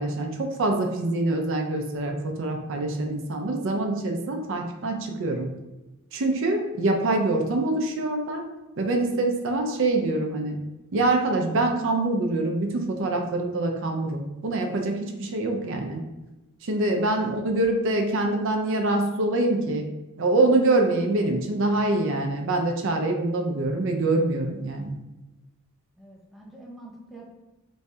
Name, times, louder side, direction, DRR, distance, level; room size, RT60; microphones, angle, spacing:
voice 1, 0.0-5.5 6.1-8.5 8.8-10.6 10.9-16.0 16.6-19.9 20.2-25.0, right 2 dB, 65° right, 3 dB, 0.5 m, -25 dB
voice 2, 26.0-27.3, right 1 dB, ahead, -3 dB, 0.6 m, -46 dB
3.1 x 2.7 x 3.4 m, 1.1 s
head